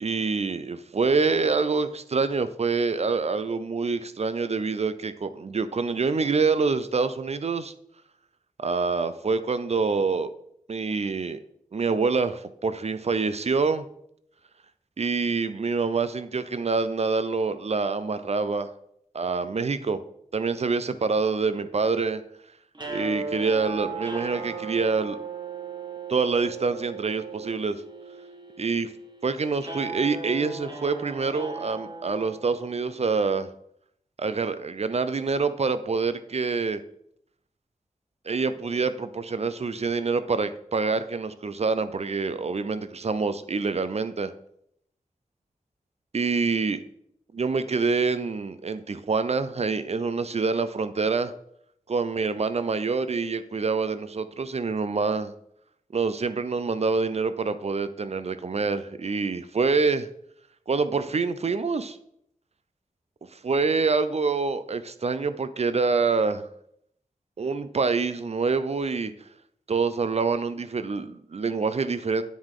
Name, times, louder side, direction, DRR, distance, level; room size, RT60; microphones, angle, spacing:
voice 1, 0.0-7.7 8.6-10.3 10.7-11.4 11.7-13.9 15.0-18.7 19.1-20.0 20.3-22.2 22.9-25.2 26.1-27.8 28.6-28.9 29.2-33.5 34.2-36.8 38.3-44.3 46.1-46.8 47.3-51.3 51.9-55.3 55.9-60.1 60.7-62.0 63.3-66.5 67.4-69.1 69.7-72.2, right 4 dB, 50° right, 12 dB, 0.4 m, -26 dB
sound 1, 22.7-33.0, right 4 dB, 30° right, 1.4 m, -37 dB
9.3 x 4.9 x 3.7 m, 0.71 s
wide cardioid pair, 80°, 14 cm